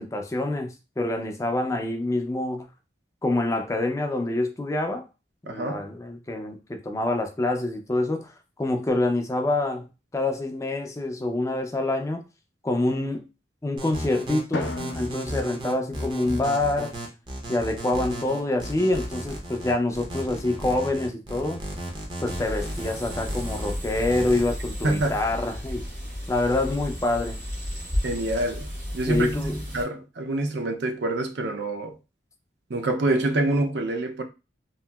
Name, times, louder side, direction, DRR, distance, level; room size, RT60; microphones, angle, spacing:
voice 1, 0.0-2.7 3.2-5.1 5.5-8.3 8.6-9.8 10.1-12.2 12.6-13.3 13.6-17.0 17.5-21.6 22.2-25.9 26.3-27.4 29.0-29.6, left 2 dB, 15° left, 0.4 m, -26 dB
sound 1, 13.8-24.4, right 1 dB, 25° right, 0.6 m, -35 dB
Drum, 14.5-16.8, left 2 dB, 85° left, 0.5 m, -36 dB
sound 2, 22.2-29.8, equal, 45° right, 1.2 m, -33 dB
voice 2, 24.8-25.2 28.0-32.0 32.7-34.2, right 2 dB, 65° right, 0.5 m, -26 dB
2.8 x 2.7 x 2.2 m
head